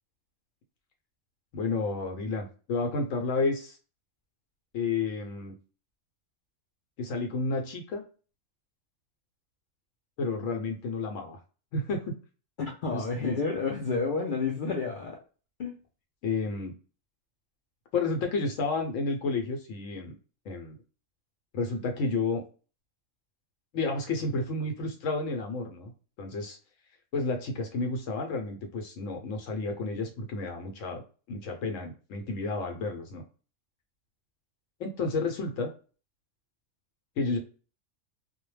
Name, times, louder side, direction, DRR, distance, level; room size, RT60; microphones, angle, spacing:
voice 1, 1.5-3.8 4.7-5.6 7.0-8.0 10.2-11.4 11.7-12.2 12.9-13.4 16.2-16.7 17.9-20.2 20.5-20.8 21.5-22.4 23.7-25.9 26.2-26.6 27.1-33.2 34.8-35.7 37.2-37.4, left 3 dB, 80° left, 4 dB, 0.9 m, -31 dB
voice 2, 12.6-15.2 15.6-15.8, left 4 dB, 65° left, 0 dB, 0.5 m, -30 dB
2.2 x 2.1 x 3.1 m, 0.37 s
omnidirectional pair, 1.3 m